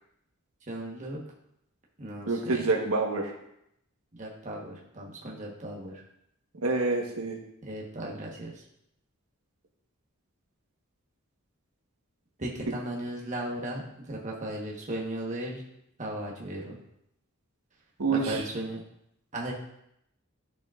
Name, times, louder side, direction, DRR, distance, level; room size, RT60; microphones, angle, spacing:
voice 1, 0.7-1.2 2.0-2.7 4.1-6.0 7.6-8.6 12.4-15.6 16.0-16.8 18.1-18.8 19.3-19.5, right 1 dB, 35° right, -3 dB, 1.2 m, -36 dB
voice 2, 2.3-3.3 6.6-7.4 18.0-18.4, right 3 dB, 85° right, 1 dB, 1.2 m, -27 dB
8.7 x 6.7 x 2.5 m, 0.77 s
head